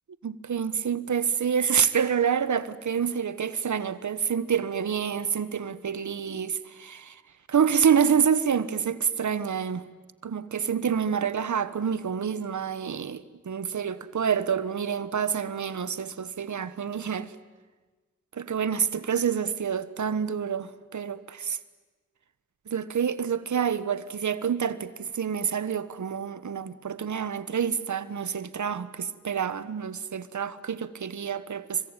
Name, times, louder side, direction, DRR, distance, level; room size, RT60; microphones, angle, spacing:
voice 1, 0.2-7.2 7.5-9.8 10.2-17.3 18.3-21.6 22.7-31.8, right 7 dB, 65° right, 1.4 m, -27 dB
27.0 x 24.0 x 9.1 m
cardioid pair, 45°, 31 cm